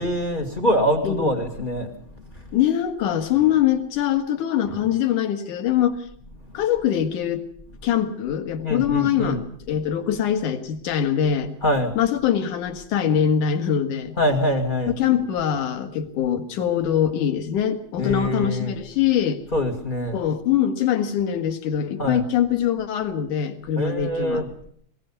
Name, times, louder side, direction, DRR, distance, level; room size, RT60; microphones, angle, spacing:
voice 1, 0.0-2.4 8.6-9.4 11.6-12.0 14.2-15.0 18.0-18.7 19.5-20.2 22.0-22.2 23.8-24.5, equal, 35° left, 5 dB, 0.8 m, -24 dB
voice 2, 2.5-6.0 6.5-7.4 7.8-9.4 9.7-11.5 12.0-14.2 15.0-19.4 20.1-24.4, left 9 dB, 60° left, 7 dB, 2.8 m, -23 dB
21.5 x 17.5 x 7.0 m, 0.62 s
omnidirectional pair, 4.3 m